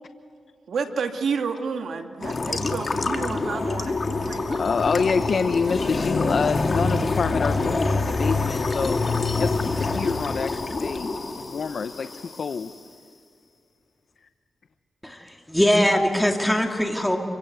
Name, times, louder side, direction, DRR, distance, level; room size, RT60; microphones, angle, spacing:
voice 1, 0.7-4.6, right 5 dB, 75° right, 5 dB, 2.3 m, -30 dB
sound 1, 2.2-12.6, left 3 dB, 45° left, 2.5 m, -26 dB
voice 2, 4.6-9.0 9.3-11.1 11.4-12.1 12.4-12.7 14.2-14.3 16.8-17.0, left 5 dB, 65° left, 10 dB, 0.9 m, -27 dB
voice 3, 15.0-17.2, equal, 5° left, 3 dB, 2.7 m, -21 dB
28.5 x 24.5 x 8.0 m, 2.3 s
cardioid pair, 65°, 0 cm